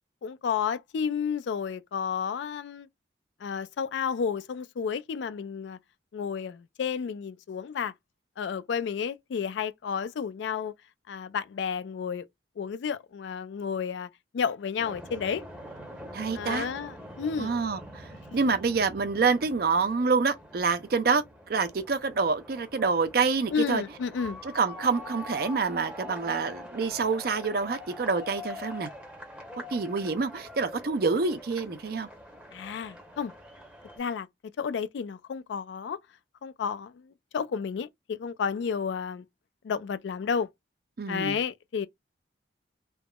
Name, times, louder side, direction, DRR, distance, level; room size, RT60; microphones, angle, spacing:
voice 1, 0.2-2.9 3.4-5.8 6.1-7.9 8.4-10.7 11.1-12.3 12.6-14.1 14.3-15.4 16.3-17.5 23.5-24.4 32.5-33.3 34.0-34.3 34.6-36.0 36.4-39.2 39.6-40.5 41.1-41.9, left 6 dB, 70° left, 0.3 m, -31 dB
sound 1, 14.8-34.0, left 1 dB, 5° right, 0.7 m, -44 dB
voice 2, 16.1-16.7 17.4-23.8 24.4-28.9 29.7-32.1 41.0-41.4, right 4 dB, 55° right, 0.5 m, -27 dB
3.4 x 2.0 x 2.2 m
head